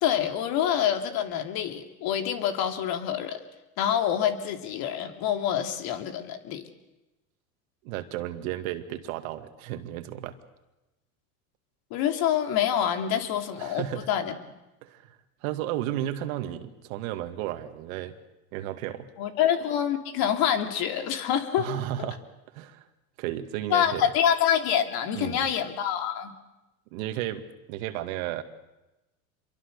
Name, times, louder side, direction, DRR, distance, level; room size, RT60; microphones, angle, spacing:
voice 1, 0.0-3.4 3.8-6.6 11.9-14.4 19.2-21.7 22.0-22.1 23.7-26.3, left 9 dB, 55° left, 6 dB, 3.0 m, -26 dB
voice 2, 7.8-10.4 13.6-14.1 14.8-15.2 15.4-18.1 18.5-19.1 21.6-22.2 22.5-22.8 23.2-24.1 25.1-25.5 26.9-28.4, right 13 dB, 70° right, 8 dB, 2.2 m, -33 dB
26.5 x 23.5 x 6.7 m, 1.0 s
supercardioid pair, 105°, 43 cm